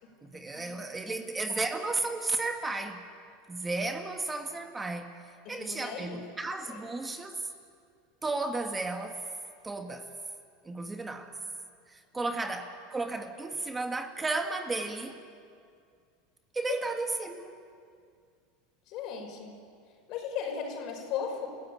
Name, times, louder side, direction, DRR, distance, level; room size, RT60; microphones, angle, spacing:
voice 1, 0.2-3.0 3.5-5.1 5.5-7.4 8.2-9.2 9.6-10.1 10.7-11.4 11.9-15.2 16.5-17.5, right 3 dB, 15° right, 5 dB, 1.8 m, -33 dB
voice 2, 5.4-6.2 6.7-6.8 12.1-12.4 16.7-16.8 18.9-19.6 20.1-21.5, left 7 dB, 55° left, 3 dB, 5.4 m, -37 dB
30.0 x 16.0 x 8.7 m, 2.3 s
hypercardioid pair, 95°, 0 cm